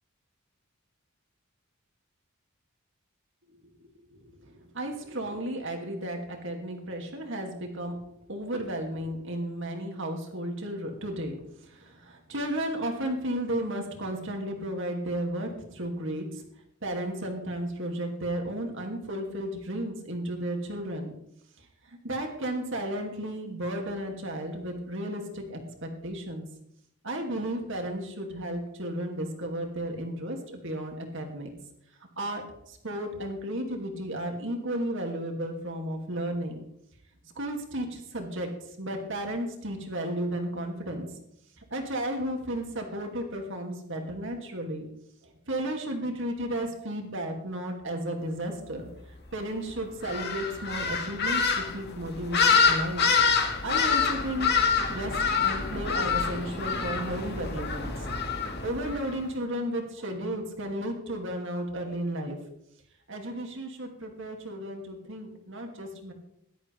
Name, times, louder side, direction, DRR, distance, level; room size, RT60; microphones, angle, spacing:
voice 1, 4.1-16.4 16.8-21.1 21.6-26.5 27.0-31.5 32.2-36.6 37.3-41.2 41.6-44.9 45.2-48.9 49.3-53.1 53.6-54.5 54.9-58.3 58.6-62.4 63.1-66.1, right 1 dB, 60° right, 2 dB, 2.7 m, -34 dB
sound 1, 50.0-59.1, left 5 dB, 50° left, 2.0 m, -26 dB
17.5 x 12.0 x 3.5 m, 0.75 s
head